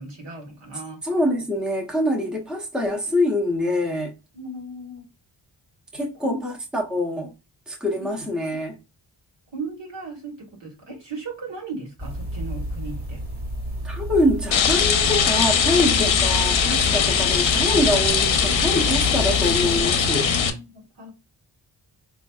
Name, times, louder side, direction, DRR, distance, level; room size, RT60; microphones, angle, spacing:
voice 1, 0.0-1.0 4.3-5.0 6.0-6.4 9.5-13.2 20.2-21.1, right 2 dB, 70° right, 1.4 m, -36 dB
voice 2, 1.0-4.1 5.9-7.3 7.7-8.8 13.8-20.3, left 1 dB, ahead, 0.7 m, -24 dB
sound 1, 12.0-19.8, equal, 30° right, 1.6 m, -31 dB
Rain, 14.5-20.5, left 7 dB, 80° left, 0.7 m, -20 dB
4.4 x 2.6 x 2.3 m
wide cardioid pair, 110°, 45 cm